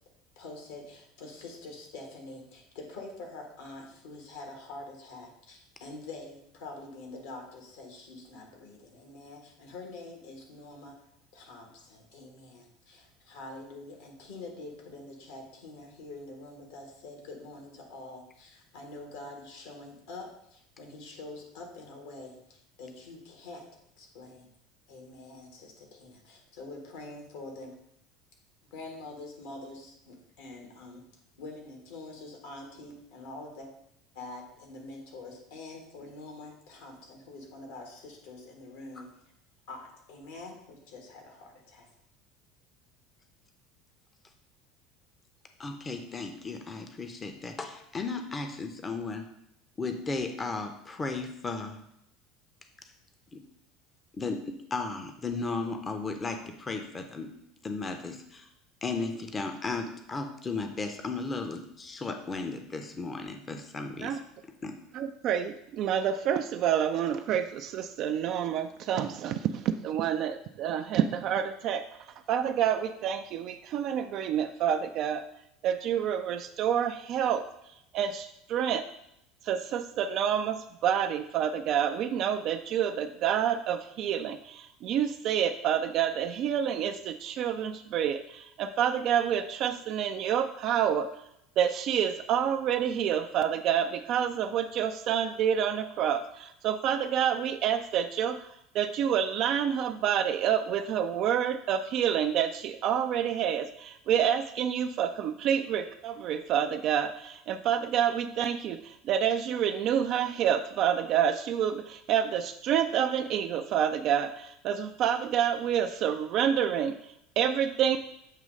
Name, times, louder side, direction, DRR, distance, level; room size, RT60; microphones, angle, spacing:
voice 1, 0.3-11.0 11.3-23.7 24.0-24.5 24.9-27.8 28.7-31.0 31.4-33.7 34.1-39.1 39.7-41.9, left 2 dB, 65° left, 1 dB, 1.5 m, -45 dB
voice 2, 45.6-49.3 49.8-51.8 53.3-53.4 54.1-57.3 57.6-58.5 58.8-64.2 64.6-64.8, left 3 dB, 25° left, 5 dB, 0.7 m, -35 dB
voice 3, 64.9-75.3 75.6-77.4 77.9-78.9 79.4-91.1 91.6-118.0, right 9 dB, 50° right, 7 dB, 0.3 m, -28 dB
7.5 x 3.1 x 5.1 m, 0.79 s
figure-of-eight pair, 70°, 0 cm